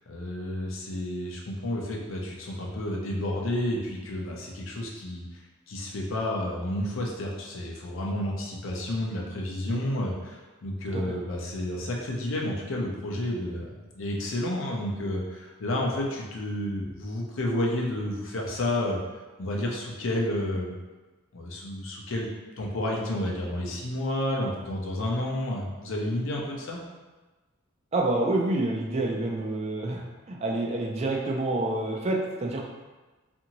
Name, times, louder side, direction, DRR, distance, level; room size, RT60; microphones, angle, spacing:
voice 1, 0.1-5.2 5.7-19.0 19.4-20.7 21.3-22.3 22.6-26.8, left 1 dB, 65° left, -2 dB, 0.6 m, -30 dB
voice 2, 27.9-30.0 30.3-32.7, right 2 dB, 30° right, -1 dB, 0.4 m, -28 dB
2.6 x 2.6 x 2.9 m, 1.2 s
head